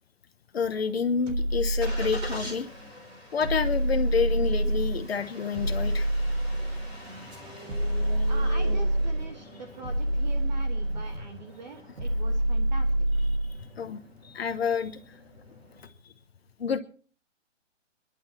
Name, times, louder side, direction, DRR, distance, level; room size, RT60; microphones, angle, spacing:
voice 1, 0.5-2.7 3.3-6.1 13.8-15.0 16.6-16.8, left 6 dB, 50° left, 10 dB, 1.0 m, -28 dB
Engine starting, 0.6-15.9, left 1 dB, 10° right, 2.9 m, -46 dB
sound 1, 1.3-2.6 3.4-5.0 5.5-7.0 7.7-9.3 9.8-11.2 12.0-13.6, right 1 dB, 70° right, 3.7 m, -26 dB
voice 2, 8.3-13.3, right 4 dB, 35° right, 4 dB, 1.6 m, -43 dB
23.0 x 11.0 x 4.3 m, 0.41 s
hypercardioid pair, 165°, 38 cm